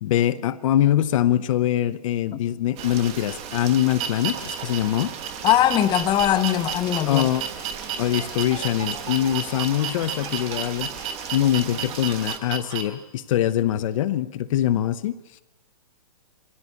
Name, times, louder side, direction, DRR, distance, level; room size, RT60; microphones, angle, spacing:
voice 1, 0.0-5.1 7.1-7.5 8.0-10.9 11.3-15.2, left 12 dB, 50° left, 0.7 m, -23 dB
Rain, 2.8-12.4, right 8 dB, 30° right, 1.4 m, -37 dB
sound 1, 2.8-12.8, right 8 dB, 50° right, 3.4 m, -32 dB
voice 2, 5.4-7.3, left 12 dB, 20° left, 0.8 m, -20 dB
22.5 x 15.5 x 8.4 m
hypercardioid pair, 135°, 21 cm